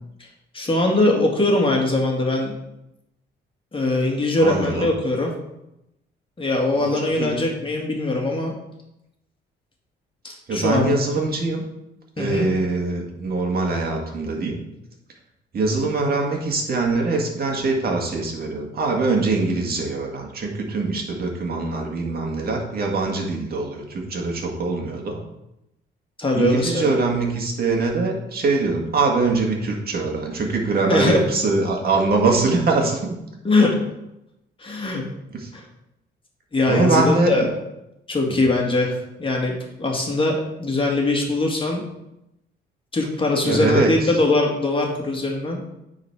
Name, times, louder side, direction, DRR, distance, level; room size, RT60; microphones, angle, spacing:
voice 1, 0.5-2.5 3.7-5.3 6.4-8.5 10.2-11.0 12.2-12.5 26.2-27.0 30.9-31.3 33.4-33.8 34.6-35.0 35.5-35.6 36.5-37.5 38.1-41.8 42.9-45.6, left 2 dB, 25° left, 0 dB, 1.9 m, -21 dB
voice 2, 4.4-4.9 6.8-6.9 7.2-7.4 10.5-11.6 12.2-14.6 15.5-25.2 26.3-33.0 35.3-35.5 36.7-37.5 38.3-38.4 43.4-44.1, right 3 dB, 50° right, 1 dB, 1.9 m, -23 dB
9.4 x 4.1 x 4.7 m, 0.86 s
cardioid pair, 90°, 20 cm